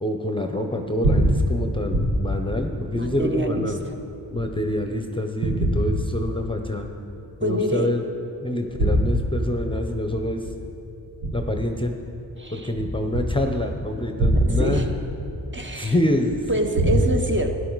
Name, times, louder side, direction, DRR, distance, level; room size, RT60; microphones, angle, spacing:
voice 1, 0.0-3.8 4.3-6.9 7.4-8.0 8.4-10.5 11.3-11.9 12.5-14.9 15.7-16.5, left 1 dB, 10° left, 4 dB, 0.9 m, -26 dB
sound 1, 0.8-4.9 5.4-6.8 7.2-7.3 8.5-12.2 12.7-17.0, right 1 dB, 90° right, 1.5 m, -25 dB
voice 2, 2.9-3.9 7.4-7.9 12.4-12.7 14.6-14.9 15.5-16.0 16.5-17.5, right 1 dB, 25° right, 4 dB, 1.3 m, -26 dB
12.5 x 10.0 x 4.1 m, 2.7 s
cardioid pair, 50°, 42 cm